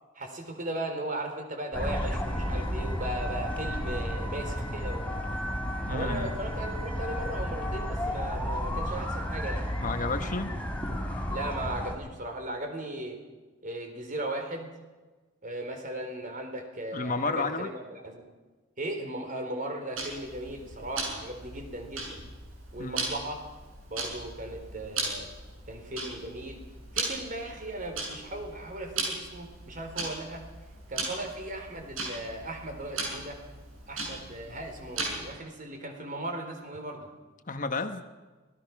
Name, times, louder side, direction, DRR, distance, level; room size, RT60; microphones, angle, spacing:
voice 1, 0.2-5.2 5.9-9.7 11.3-13.2 13.6-14.7 15.4-18.2 18.8-22.2 22.7-23.4 23.9-25.3 25.7-26.6 26.9-30.4 30.9-33.4 33.9-37.1, right 1 dB, 40° right, 4 dB, 3.9 m, -37 dB
sound 1, 1.7-11.9, equal, 5° left, 3.9 m, -32 dB
voice 2, 5.9-6.3 9.8-10.6 16.9-17.7 22.8-23.1 37.5-38.0, left 3 dB, 40° left, 8 dB, 1.2 m, -31 dB
Tick-tock, 20.0-35.4, right 3 dB, 85° right, 7.9 m, -38 dB
25.5 x 18.0 x 6.0 m, 1.3 s
head